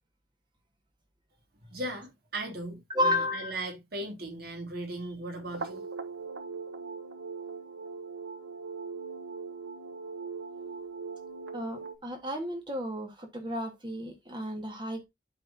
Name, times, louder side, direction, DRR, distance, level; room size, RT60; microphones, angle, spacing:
voice 1, 1.7-5.8, right 1 dB, 50° right, 3.0 m, -38 dB
voice 2, 2.9-3.5 11.5-15.1, left 1 dB, 25° right, 1.7 m, -32 dB
sound 1, 5.4-12.0, right 4 dB, 75° right, 1.2 m, -40 dB
12.0 x 4.4 x 2.8 m
head